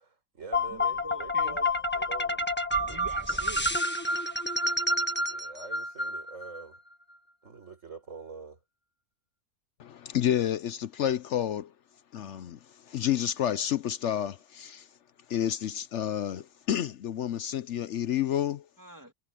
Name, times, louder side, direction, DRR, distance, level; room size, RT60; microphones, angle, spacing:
voice 1, 0.0-3.0 3.3-3.4 5.3-6.8 7.4-8.6, right 4 dB, 50° right, 4.6 m, -45 dB
sound 1, 0.5-6.6, left 1 dB, 5° left, 1.3 m, -29 dB
voice 2, 0.7-1.6 2.9-3.7 18.8-19.1, right 1 dB, 10° right, 2.2 m, -44 dB
voice 3, 9.8-11.7 12.1-12.6 12.9-14.9 15.3-18.6, left 10 dB, 65° left, 0.7 m, -30 dB
omnidirectional pair, 1.7 m